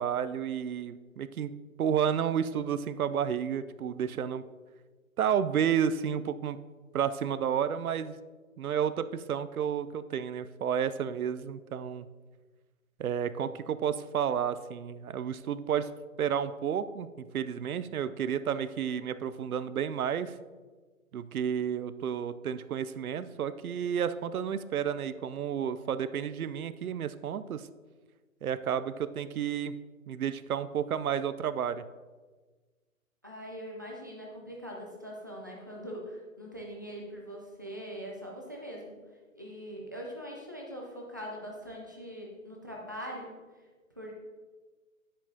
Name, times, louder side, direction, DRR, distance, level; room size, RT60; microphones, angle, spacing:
voice 1, 0.0-4.4 5.2-6.6 6.9-8.2 8.6-12.1 13.0-15.9 16.2-20.4 21.1-27.7 28.4-29.8 30.1-31.9, right 8 dB, 85° right, 13 dB, 0.6 m, -31 dB
voice 2, 33.2-39.0 39.3-43.3 44.0-44.1, equal, 15° right, -2 dB, 0.4 m, -42 dB
10.0 x 7.7 x 2.7 m, 1.4 s
hypercardioid pair, 155°, 43 cm